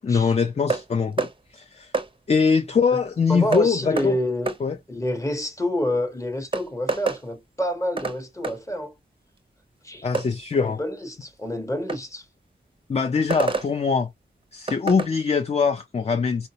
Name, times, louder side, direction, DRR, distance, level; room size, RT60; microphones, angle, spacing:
voice 1, 0.0-1.9 2.3-4.2 4.6-4.8 10.0-10.8 12.9-14.1 14.5-16.5, left 5 dB, 35° left, 0.4 m, -22 dB
sound 1, 0.7-0.9 1.2-1.3 1.9-2.1 3.5-3.7 4.0-4.1 4.5-4.6 6.0-6.1 6.5-7.2 8.0-8.2 8.4-8.6 10.1-10.3 11.9-12.0 13.3-13.7 14.7-15.1, right 4 dB, 25° right, 0.5 m, -26 dB
voice 2, 3.3-4.5 4.9-8.9 9.8-10.1 10.5-12.3, left 1 dB, 15° left, 0.9 m, -28 dB
4.0 x 2.0 x 2.7 m
wide cardioid pair, 85°, 20 cm